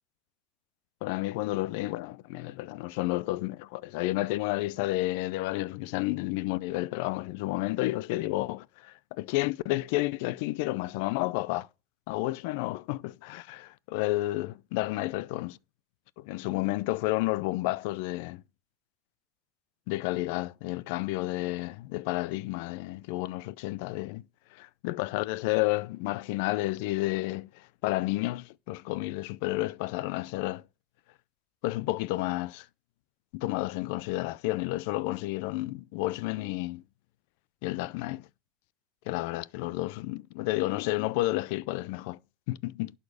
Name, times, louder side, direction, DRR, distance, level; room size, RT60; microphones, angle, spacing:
voice 1, 1.0-11.7 12.1-15.6 16.2-18.4 19.9-24.2 24.5-30.6 31.6-32.7 33.3-36.8 37.6-38.3 39.1-42.2 42.5-42.9, left 19 dB, 70° left, 0.5 m, -31 dB
12.0 x 4.3 x 6.9 m
supercardioid pair, 120°, 0 cm